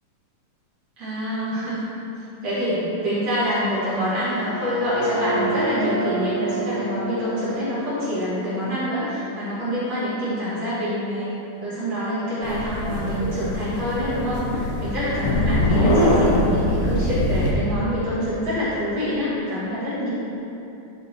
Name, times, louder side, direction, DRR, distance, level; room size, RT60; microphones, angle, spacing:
voice 1, 1.0-1.9 2.4-11.3 11.6-20.1, equal, 50° right, -12 dB, 2.9 m, -26 dB
sound 1, 3.6-9.5, right 2 dB, 70° right, 2.7 m, -30 dB
sound 2, 12.4-17.5, left 1 dB, 70° left, 1.5 m, -22 dB
10.5 x 4.4 x 4.4 m, 2.9 s
omnidirectional pair, 4.1 m